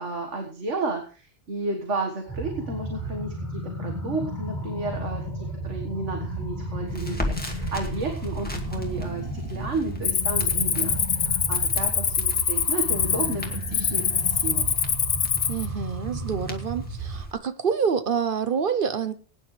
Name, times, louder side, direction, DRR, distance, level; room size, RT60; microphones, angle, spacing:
voice 1, 0.0-14.7, right 3 dB, 85° right, 2.0 m, -32 dB
sound 1, 2.2-17.2, right 1 dB, 15° right, 7.2 m, -33 dB
Crackle, 6.9-17.3, left 1 dB, 10° left, 2.1 m, -39 dB
Cricket, 10.0-15.7, left 7 dB, 80° left, 1.2 m, -24 dB
voice 2, 15.5-19.1, right 6 dB, 50° right, 1.0 m, -27 dB
22.0 x 9.8 x 3.3 m
omnidirectional pair, 1.2 m